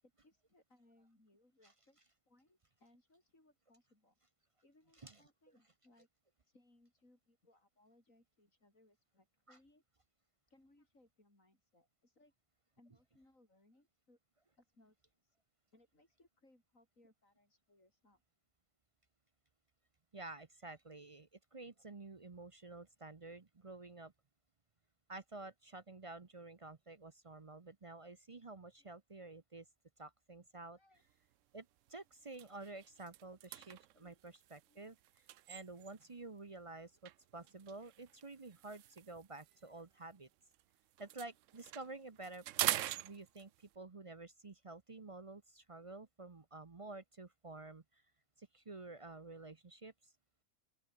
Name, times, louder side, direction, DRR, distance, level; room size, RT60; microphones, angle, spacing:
voice 1, 0.0-2.0 2.3-4.2 4.6-6.1 6.4-9.8 10.5-12.3 12.8-14.2 14.6-15.0 15.2-15.4 15.7-18.2 28.8-28.9 30.7-31.0 33.9-34.2 34.7-34.9, left 1 dB, 70° left, 7.9 m, -70 dB
voice 2, 20.1-24.1 25.1-29.7 30.0-30.8 31.5-35.0 35.5-40.3 41.0-48.0 48.4-50.1, right 2 dB, 30° right, 0.7 m, -51 dB
sound 1, 31.1-31.3 31.8-31.9 32.3-36.2 37.1-40.6 40.9-43.8, right 13 dB, 70° right, 0.9 m, -44 dB
open air
omnidirectional pair, 1.4 m